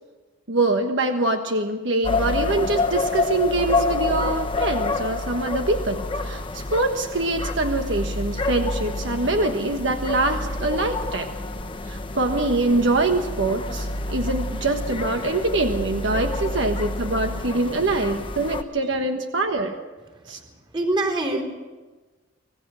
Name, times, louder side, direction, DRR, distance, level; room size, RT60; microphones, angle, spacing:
voice 1, 0.5-11.3 11.8-19.8 20.3-20.4, right 2 dB, 70° right, 5 dB, 1.4 m, -24 dB
sound 1, 2.0-18.6, left 2 dB, 25° left, 1.1 m, -28 dB
voice 2, 20.2-21.4, right 2 dB, 25° right, 3 dB, 3.8 m, -26 dB
26.0 x 17.5 x 6.4 m, 1.3 s
head